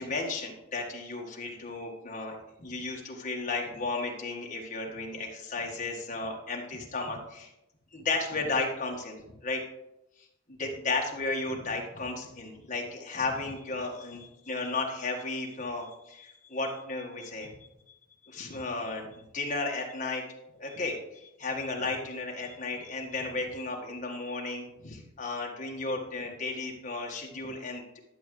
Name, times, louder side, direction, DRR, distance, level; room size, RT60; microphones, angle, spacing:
voice 1, 0.0-7.5 7.9-9.2 9.4-9.6 10.5-17.7 18.2-20.2 20.6-28.0, left 3 dB, 35° left, 0 dB, 1.7 m, -34 dB
11.5 x 7.1 x 3.3 m, 0.89 s
head